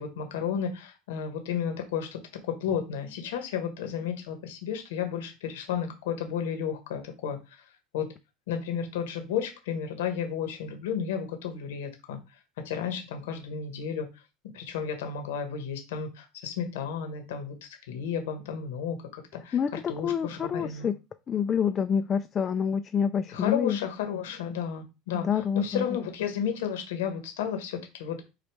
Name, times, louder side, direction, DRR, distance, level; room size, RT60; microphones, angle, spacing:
voice 1, 0.0-7.6 7.9-8.1 8.5-14.2 14.5-20.9 23.3-28.3, left 7 dB, 90° left, 1.0 m, -33 dB
voice 2, 19.5-21.0 21.3-23.8 25.1-25.8, left 7 dB, 30° left, 0.3 m, -27 dB
5.0 x 2.3 x 4.6 m
supercardioid pair, 115°, 0 cm